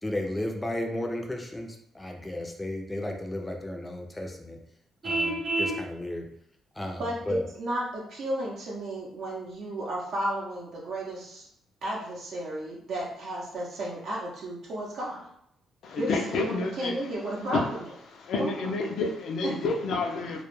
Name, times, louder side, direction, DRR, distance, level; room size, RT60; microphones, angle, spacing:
voice 1, 0.0-4.6 5.0-6.3 6.7-7.4, left 1 dB, 15° left, 2 dB, 0.4 m, -34 dB
Vehicle horn car horn honking, 5.0-5.8, right 2 dB, 35° right, 0.7 m, -28 dB
voice 2, 7.0-11.5 11.8-15.3 16.0-17.6 18.4-18.5 19.4-19.6, right 1 dB, 70° right, -5 dB, 0.6 m, -33 dB
voice 3, 15.8-17.0 17.3-17.8 18.1-20.4, left 3 dB, 70° left, 2 dB, 0.4 m, -29 dB
2.2 x 2.0 x 3.0 m, 0.72 s
cardioid pair, 90°, 0 cm